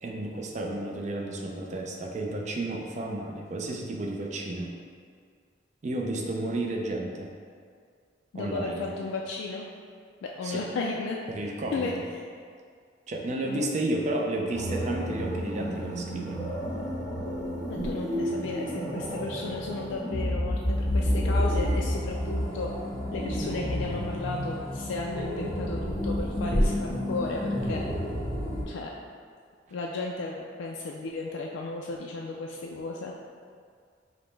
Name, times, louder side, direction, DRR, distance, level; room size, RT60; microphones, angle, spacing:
voice 1, 0.0-4.7 5.8-7.3 8.3-8.9 10.4-10.6 11.3-11.9 13.1-16.5, right 1 dB, 40° right, 0 dB, 0.4 m, -32 dB
voice 2, 8.3-9.6 10.2-11.2 11.7-11.9 13.5-13.7 17.7-22.7 23.1-27.8 28.7-28.9 29.7-33.1, left 3 dB, 85° left, -1 dB, 0.3 m, -34 dB
sound 1, 14.5-28.6, equal, 15° left, 0.8 m, -30 dB
4.9 x 2.1 x 3.2 m, 2.1 s
head